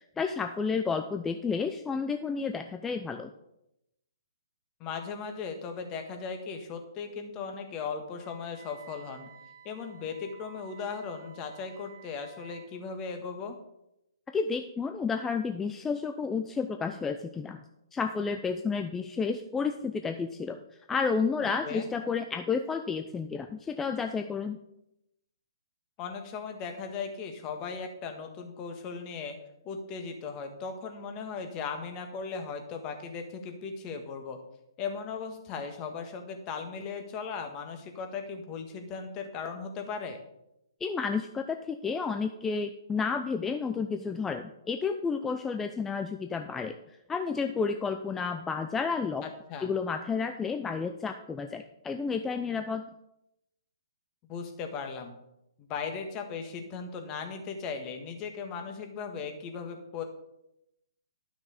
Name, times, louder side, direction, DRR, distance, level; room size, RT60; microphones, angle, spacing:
voice 1, 0.2-3.3 14.3-17.6 17.9-20.6 20.9-24.6 40.8-46.8 47.1-49.2 49.6-52.8, left 5 dB, 10° left, 6 dB, 0.5 m, -31 dB
voice 2, 4.8-9.3 9.6-13.6 21.4-21.9 26.0-29.4 29.6-34.4 34.8-40.2 49.2-49.7 54.2-55.2 55.6-60.0, left 5 dB, 25° left, 5 dB, 1.6 m, -37 dB
Wind instrument woodwind instrument, 8.2-12.7, right 6 dB, 55° right, 1.3 m, -53 dB
12.0 x 6.1 x 5.1 m, 0.84 s
figure-of-eight pair, 135°, 3 cm